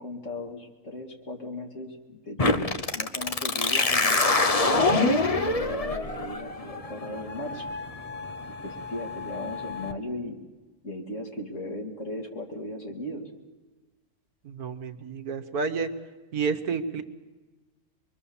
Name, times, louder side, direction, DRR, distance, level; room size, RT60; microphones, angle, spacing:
voice 1, 0.0-7.7 8.5-10.4 10.8-13.3, left 1 dB, 55° left, 2 dB, 3.0 m, -37 dB
sound 1, 2.4-9.9, left 3 dB, 30° left, 0.7 m, -26 dB
voice 2, 14.4-15.9 16.3-17.0, right 5 dB, 75° right, 8 dB, 1.7 m, -30 dB
25.5 x 22.5 x 7.1 m, 1.2 s
omnidirectional pair, 1.6 m